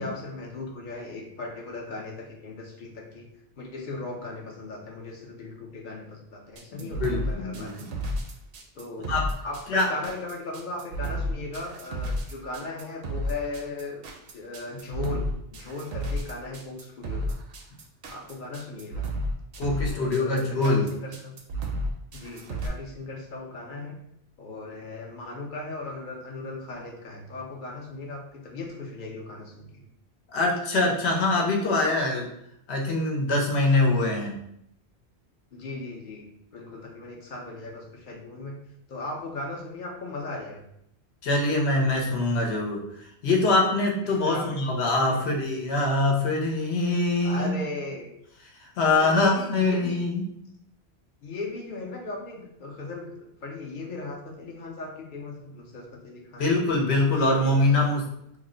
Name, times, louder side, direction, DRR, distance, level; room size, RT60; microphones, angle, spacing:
voice 1, 0.0-3.3 3.6-7.7 8.7-9.1 9.4-14.0 14.3-17.3 18.1-19.1 19.8-21.4 22.1-24.0 24.4-29.9 35.5-36.3 36.5-38.6 38.9-40.6 44.2-44.6 45.1-45.4 47.2-48.1 48.8-50.0 51.2-56.5 56.8-57.8, left 2 dB, 55° left, 0 dB, 0.7 m, -37 dB
sound 1, 6.6-22.7, equal, 65° right, 0.7 m, -32 dB
voice 2, 6.7-7.9 9.1-9.2 9.7-9.9 19.6-20.9 30.3-32.3 32.7-34.4 41.2-42.8 43.2-47.6 48.6-50.3 56.4-58.1, left 2 dB, 85° left, -1 dB, 1.0 m, -24 dB
3.0 x 2.1 x 3.7 m, 0.76 s
omnidirectional pair, 1.1 m